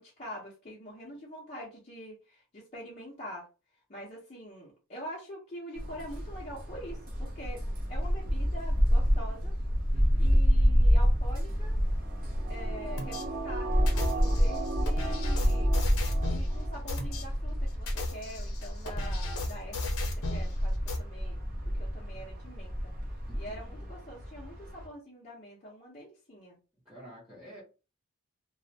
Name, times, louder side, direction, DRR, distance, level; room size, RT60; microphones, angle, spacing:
voice 1, 0.0-3.5 3.9-7.6 7.9-9.5 10.2-11.8 12.5-15.8 16.3-21.4 21.6-22.9 23.3-26.6, equal, 30° left, -6 dB, 0.6 m, -45 dB
sound 1, 5.8-24.9, equal, 40° right, 0.6 m, -28 dB
voice 2, 9.9-10.3 14.2-14.4 23.3-23.9 26.8-27.6, equal, 5° right, -9 dB, 0.8 m, -50 dB
sound 2, 12.0-16.8 17.1-17.2, right 4 dB, 90° right, 0.4 m, -39 dB
sound 3, 13.0-13.2 13.9-16.5 16.9-17.2 17.7-20.5 20.9-21.0, left 3 dB, 75° left, 0.7 m, -36 dB
2.3 x 2.0 x 2.7 m, 0.32 s
head